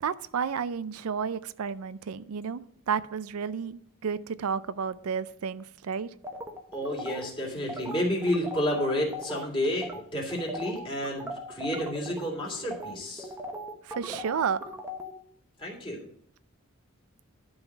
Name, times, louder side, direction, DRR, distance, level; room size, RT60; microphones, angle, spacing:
voice 1, 0.0-2.6 2.9-6.1 13.8-14.6, right 6 dB, 90° right, 16 dB, 0.4 m, -31 dB
sound 1, 6.2-9.5 9.8-10.0 10.3-15.1, equal, 10° right, 1.0 m, -38 dB
voice 2, 6.7-13.3 15.6-16.1, equal, 25° left, -2 dB, 2.9 m, -30 dB
11.5 x 3.9 x 6.1 m, 0.69 s
head